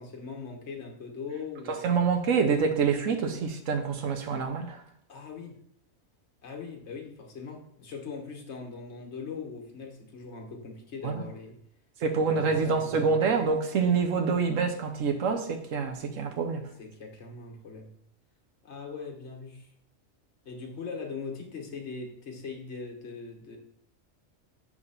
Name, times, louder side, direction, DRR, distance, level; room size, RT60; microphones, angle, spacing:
voice 1, 0.0-1.9 5.1-5.6 6.4-11.6 12.1-13.4 16.8-17.9 18.6-19.7 20.4-23.6, left 5 dB, 60° left, 1.4 m, -41 dB
voice 2, 1.7-4.8 11.0-11.3 12.0-16.7, right 5 dB, 80° right, 1.2 m, -26 dB
7.2 x 3.3 x 5.6 m
omnidirectional pair, 1.3 m